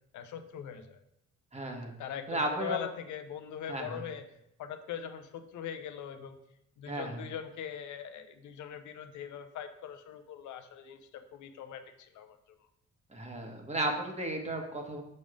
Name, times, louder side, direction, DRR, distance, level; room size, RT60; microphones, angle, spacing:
voice 1, 0.1-1.0 2.0-4.2 4.6-6.4 6.8-12.4, left 8 dB, 75° left, 8 dB, 0.6 m, -41 dB
voice 2, 1.5-1.9 2.3-2.8 3.7-4.0 6.8-7.2 13.1-15.0, right 1 dB, 20° right, 3 dB, 1.2 m, -34 dB
6.6 x 3.6 x 4.9 m, 0.79 s
cardioid pair, 90°, 30 cm